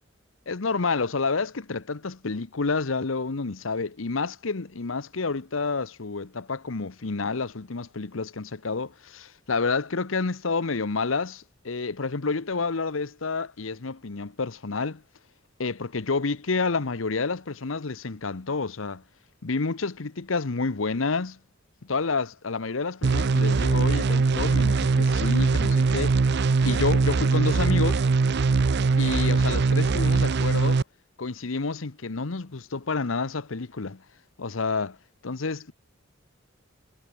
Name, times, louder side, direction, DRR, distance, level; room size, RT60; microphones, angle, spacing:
voice 1, 0.5-15.0 15.6-19.0 19.4-21.4 21.8-26.2 26.6-28.0 29.0-30.8 31.2-34.0 34.4-35.0 35.2-35.7, left 4 dB, 80° left, 1.0 m, -29 dB
sound 1, 23.0-30.8, right 4 dB, 60° right, 0.5 m, -22 dB
head